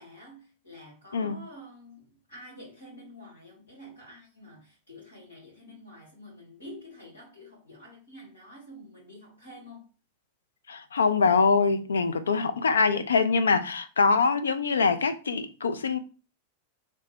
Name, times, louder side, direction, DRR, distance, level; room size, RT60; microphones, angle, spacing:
voice 1, 0.0-9.9, left 1 dB, 90° left, 1.6 m, -48 dB
voice 2, 10.7-16.0, left 4 dB, 70° left, 0.4 m, -24 dB
3.1 x 2.1 x 4.2 m
figure-of-eight pair, 90°, 0 cm